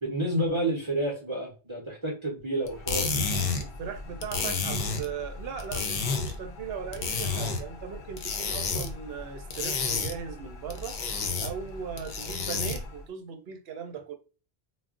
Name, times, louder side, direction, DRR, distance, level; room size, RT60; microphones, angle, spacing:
voice 1, 0.0-3.3, right 1 dB, 30° right, 0.8 m, -30 dB
sound 1, 2.7-13.0, left 4 dB, 55° left, 0.6 m, -32 dB
voice 2, 3.6-11.0 11.4-14.1, right 7 dB, 70° right, 0.8 m, -38 dB
2.3 x 2.1 x 3.6 m
omnidirectional pair, 1.1 m